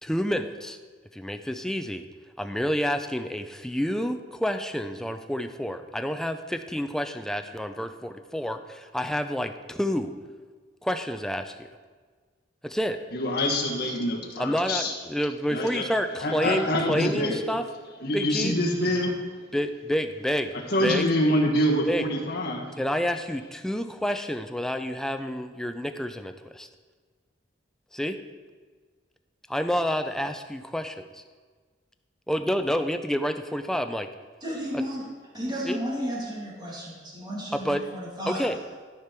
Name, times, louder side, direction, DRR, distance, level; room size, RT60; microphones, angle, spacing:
voice 1, 0.0-0.8 1.1-2.1 2.4-10.1 10.8-11.7 12.6-13.0 14.4-17.6 18.1-18.5 19.5-20.5 20.8-21.0 21.9-22.0 22.8-26.7 27.9-28.2 29.5-31.2 32.3-34.1 34.7-34.9 35.7-35.8 37.7-37.8 38.3-38.6, equal, 5° left, 7 dB, 0.4 m, -29 dB
voice 2, 13.1-14.9 15.5-15.8 16.2-17.4 18.0-19.2 20.7-22.8, left 1 dB, 60° left, -1 dB, 1.6 m, -25 dB
voice 3, 34.4-35.0 35.3-38.4, equal, 25° right, -5 dB, 2.2 m, -33 dB
13.0 x 5.2 x 4.5 m, 1.5 s
head